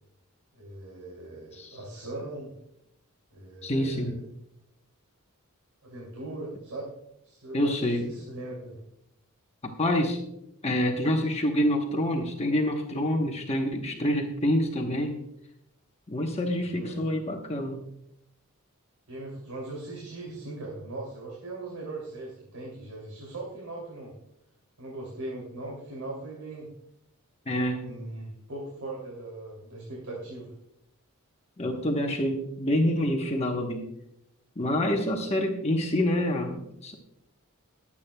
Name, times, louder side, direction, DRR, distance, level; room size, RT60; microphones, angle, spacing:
voice 1, 0.5-2.5 3.3-4.2 5.8-6.9 7.2-8.8 16.6-17.0 19.1-24.1 24.8-26.7 27.5-30.5, right 2 dB, 85° right, -3 dB, 2.8 m, -39 dB
voice 2, 3.6-4.2 7.5-8.1 9.8-10.2 10.6-15.2 16.1-17.8 27.5-27.9 31.6-33.9 34.6-36.9, left 1 dB, 30° left, 2 dB, 1.0 m, -27 dB
21.5 x 8.5 x 2.2 m, 0.78 s
head